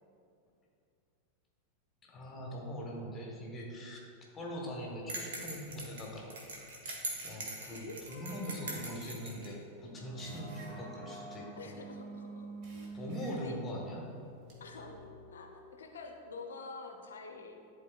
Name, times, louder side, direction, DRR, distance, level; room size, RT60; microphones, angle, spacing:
voice 1, 2.0-4.0 4.3-6.3 6.6-6.7 7.2-11.8 12.9-14.0, equal, 20° left, -1 dB, 1.2 m, -42 dB
sound 1, 5.1-6.5 6.8-12.1 12.4-13.7 14.1-14.6, right 2 dB, 35° right, 1.2 m, -55 dB
sound 2, 5.1-9.5, right 2 dB, 60° right, 1.1 m, -42 dB
voice 2, 7.6-8.0 11.6-12.5 13.3-13.6 14.6-17.7, left 3 dB, 65° left, 3 dB, 0.6 m, -47 dB
sound 3, 8.0-15.8, right 2 dB, 10° right, 1.2 m, -49 dB
11.0 x 4.0 x 2.3 m, 2.5 s
figure-of-eight pair, 90°, 0 cm